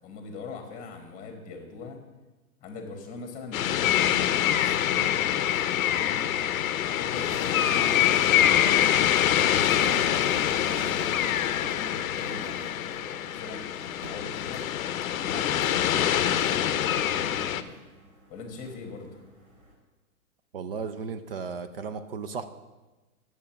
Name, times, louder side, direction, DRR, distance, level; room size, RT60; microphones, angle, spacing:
voice 1, 0.0-2.0 2.6-6.2 7.0-10.0 10.5-14.7 15.1-17.8 18.3-19.1, left 3 dB, 15° left, 5 dB, 1.5 m, -41 dB
sound 1, 3.5-17.6, left 11 dB, 65° left, 0.6 m, -25 dB
sound 2, 7.1-19.7, right 1 dB, 60° right, 3.9 m, -49 dB
voice 2, 20.5-22.4, right 5 dB, 40° right, 10 dB, 0.5 m, -35 dB
8.6 x 7.2 x 5.8 m, 1.2 s
hypercardioid pair, 145°, 45 cm